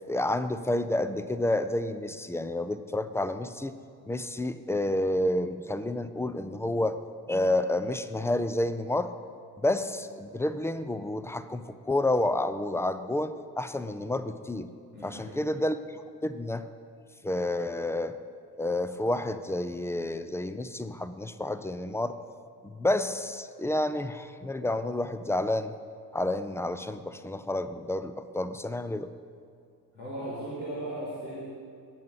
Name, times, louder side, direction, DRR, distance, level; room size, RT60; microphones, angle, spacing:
voice 1, 0.1-3.7 4.1-7.0 7.3-9.1 9.6-14.7 15.0-16.7 17.2-18.2 18.6-22.2 22.6-25.7 26.1-29.1, left 1 dB, 5° left, 12 dB, 0.4 m, -29 dB
voice 2, 14.9-15.3 29.9-31.4, right 1 dB, 80° left, -12 dB, 2.8 m, -37 dB
19.0 x 7.6 x 4.0 m, 2.3 s
figure-of-eight pair, 45°, 47 cm